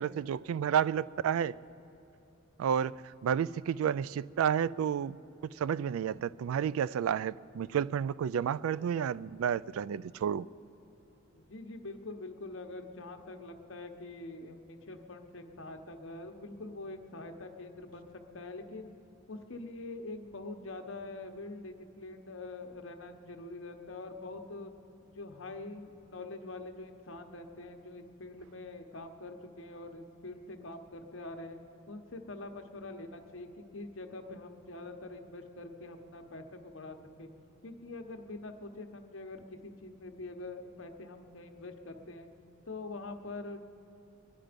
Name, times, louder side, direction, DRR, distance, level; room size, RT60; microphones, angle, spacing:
voice 1, 0.0-1.5 2.6-5.2 5.4-10.5, right 8 dB, 85° right, 20 dB, 0.3 m, -31 dB
voice 2, 11.3-18.1 18.3-18.9 19.3-24.7 25.0-31.6 31.9-37.3 37.6-42.3 42.7-43.6, left 2 dB, 65° left, 5 dB, 1.1 m, -44 dB
23.0 x 10.5 x 5.1 m, 2.8 s
head